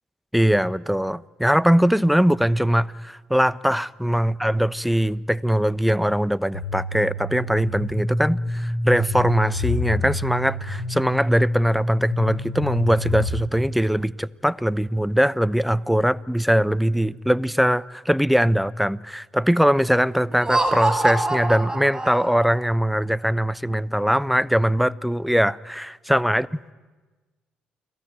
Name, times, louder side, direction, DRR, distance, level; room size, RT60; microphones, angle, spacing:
voice 1, 0.3-26.5, equal, ahead, 0.8 m, -21 dB
sound 1, 6.5-13.4, left 2 dB, 90° left, 2.1 m, -28 dB
Laughter, 20.3-22.6, right 2 dB, 15° right, 4.5 m, -25 dB
29.5 x 21.0 x 9.1 m
figure-of-eight pair, 45°, 4 cm